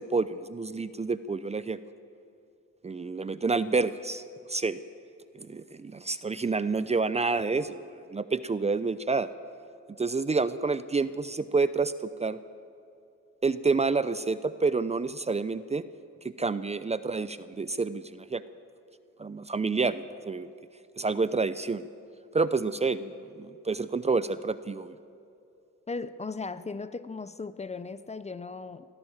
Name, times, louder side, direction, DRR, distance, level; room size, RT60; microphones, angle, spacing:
voice 1, 0.0-1.8 2.8-4.2 4.5-4.8 5.3-9.3 10.0-11.9 12.2-12.4 13.4-15.8 16.4-18.4 19.2-20.5 21.0-21.9 22.3-23.1 23.4-25.0, right 4 dB, 20° right, 13 dB, 0.6 m, -28 dB
voice 2, 25.9-28.9, left 4 dB, 20° left, 13 dB, 0.8 m, -37 dB
24.0 x 16.0 x 7.4 m, 2.6 s
cardioid pair, 90°, 30 cm